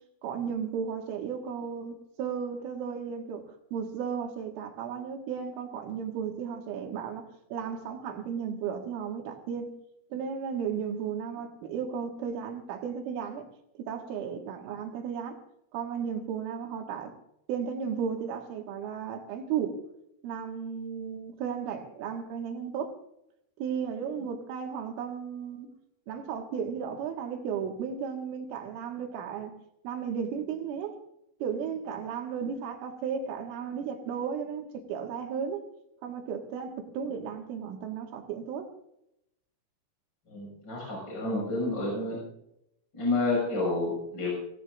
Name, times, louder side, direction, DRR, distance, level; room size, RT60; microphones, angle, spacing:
voice 1, 0.2-3.4 3.7-7.2 7.5-9.7 10.1-13.4 13.8-15.4 15.7-17.1 17.5-19.8 20.2-22.9 23.6-25.7 26.1-29.5 29.8-31.0 31.4-35.6 36.0-38.7, right 7 dB, 80° right, 3 dB, 4.1 m, -34 dB
voice 2, 40.3-42.2 42.9-44.3, left 2 dB, 20° left, -2 dB, 6.6 m, -29 dB
25.0 x 16.0 x 2.5 m, 0.80 s
omnidirectional pair, 5.8 m